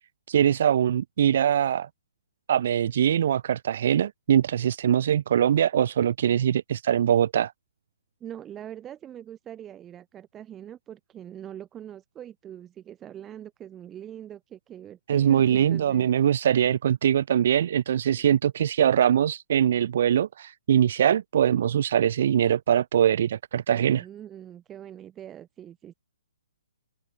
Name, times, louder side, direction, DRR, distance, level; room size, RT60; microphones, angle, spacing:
voice 1, 0.3-1.9 2.5-7.5 15.1-24.1, right 9 dB, 55° right, 2.5 m, -22 dB
voice 2, 8.2-16.1 18.2-18.3 23.7-25.9, right 10 dB, 15° right, 7.4 m, -42 dB
open air
hypercardioid pair, 135°, 0 cm